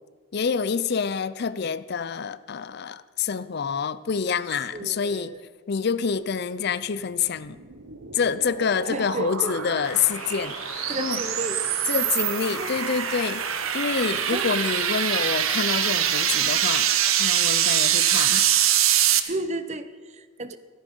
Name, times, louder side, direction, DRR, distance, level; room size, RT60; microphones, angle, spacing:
voice 1, 0.3-5.3 5.7-7.6 8.1-11.2 11.9-13.4 13.7-16.9 17.2-18.5 18.9-19.0, left 6 dB, 55° left, 0.5 m, -27 dB
voice 2, 4.7-5.4 8.9-9.7 10.9-11.6 12.6-12.9 14.3-14.5 19.3-20.6, right 2 dB, 35° right, 0.7 m, -33 dB
sound 1, 7.5-19.2, right 10 dB, 85° right, 0.9 m, -24 dB
Storm and rain, 9.8-16.6, left 4 dB, 90° left, 1.8 m, -41 dB
15.0 x 13.5 x 5.4 m
head